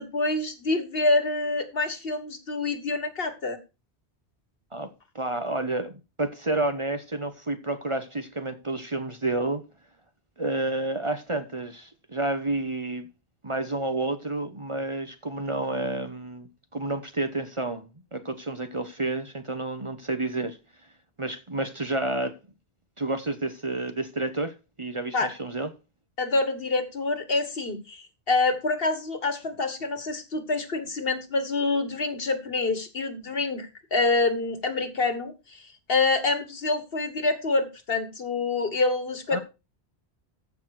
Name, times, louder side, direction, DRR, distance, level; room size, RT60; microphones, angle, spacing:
voice 1, 0.0-3.6 25.1-25.3 26.2-39.4, left 3 dB, 60° left, 1.7 m, -26 dB
voice 2, 5.1-9.6 10.4-13.1 13.4-20.6 21.2-22.4 23.0-24.5 24.8-25.7 39.3-39.4, right 2 dB, 30° right, 1.0 m, -30 dB
14.5 x 5.9 x 4.7 m
omnidirectional pair, 1.1 m